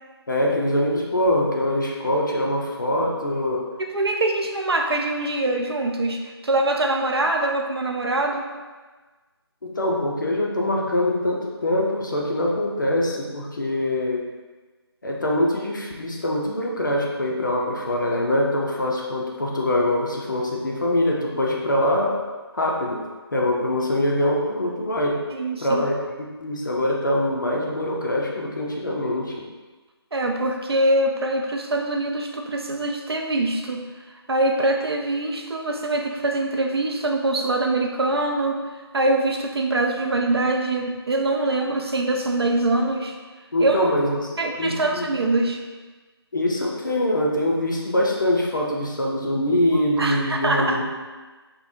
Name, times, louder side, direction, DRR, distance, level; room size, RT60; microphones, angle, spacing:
voice 1, 0.3-3.6 9.6-14.2 15.0-22.2 22.5-23.0 23.3-25.2 25.6-29.5 43.5-44.3 44.6-45.1 46.3-50.8, left 1 dB, 45° left, -2 dB, 0.4 m, -23 dB
voice 2, 3.8-8.5 25.3-25.8 30.1-33.9 34.3-38.6 38.9-43.1 43.6-43.9 44.4-45.6 49.7-50.8, right 2 dB, 65° right, 2 dB, 0.4 m, -23 dB
3.1 x 2.0 x 2.6 m, 1.3 s
figure-of-eight pair, 155°, 14 cm